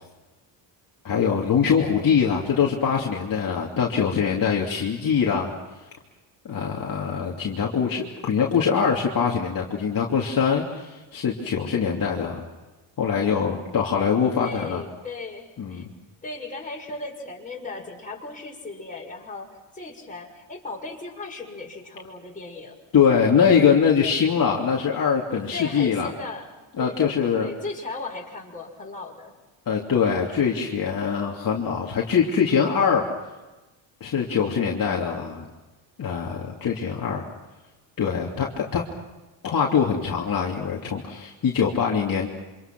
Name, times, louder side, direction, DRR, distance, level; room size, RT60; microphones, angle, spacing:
voice 1, 1.0-5.5 6.4-12.4 13.0-14.8 15.6-15.8 22.9-26.1 26.8-27.5 29.7-33.1 34.0-35.4 36.0-37.2 38.0-38.8 39.4-42.3, left 6 dB, 40° left, -2 dB, 3.0 m, -23 dB
voice 2, 14.4-15.8 16.2-22.8 25.5-26.5 26.8-27.0 27.4-29.3, left 3 dB, 15° left, -1 dB, 6.2 m, -36 dB
27.5 x 26.5 x 6.2 m, 1.1 s
cardioid pair, 115°, 49 cm